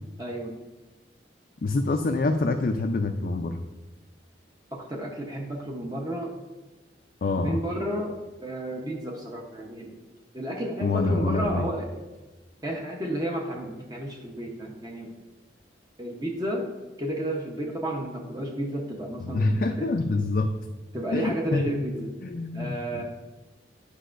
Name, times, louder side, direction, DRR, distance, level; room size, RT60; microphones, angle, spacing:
voice 1, 0.2-0.5 4.7-6.3 7.4-10.0 10.3-12.0 12.6-15.1 16.0-16.7 17.0-19.9 20.9-22.1 22.5-23.0, right 1 dB, 20° right, 0 dB, 0.8 m, -32 dB
voice 2, 1.6-3.6 7.2-7.6 10.8-11.7 19.2-20.5 21.1-21.8 22.2-23.0, left 2 dB, 50° left, 4 dB, 0.4 m, -26 dB
10.0 x 5.4 x 2.5 m, 1.1 s
head